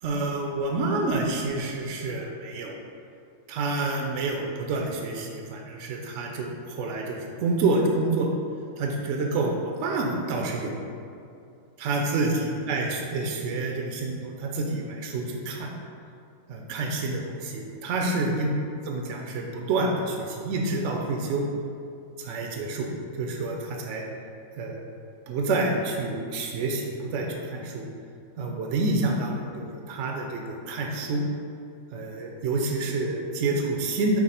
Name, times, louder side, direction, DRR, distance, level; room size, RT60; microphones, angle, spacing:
voice 1, 0.0-2.8 3.5-8.3 8.8-10.8 11.8-15.7 16.5-18.5 18.9-21.4 22.2-22.9 23.2-24.0 24.6-24.8 25.3-27.9 28.4-31.3 31.9-34.2, right 2 dB, 65° right, 0 dB, 0.8 m, -28 dB
5.7 x 2.1 x 4.2 m, 2.5 s
omnidirectional pair, 1.6 m